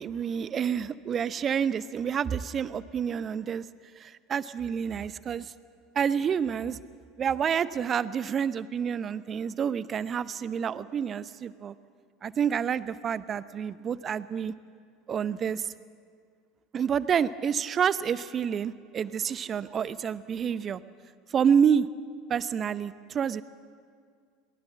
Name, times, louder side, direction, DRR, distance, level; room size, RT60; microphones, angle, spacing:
voice 1, 0.0-3.6 4.0-5.5 6.0-6.8 7.2-11.7 12.2-14.5 15.1-15.7 16.7-20.8 21.3-21.9 22.3-23.4, right 7 dB, 35° right, 17 dB, 0.8 m, -28 dB
22.0 x 19.0 x 7.4 m, 2.1 s
figure-of-eight pair, 75°, 0 cm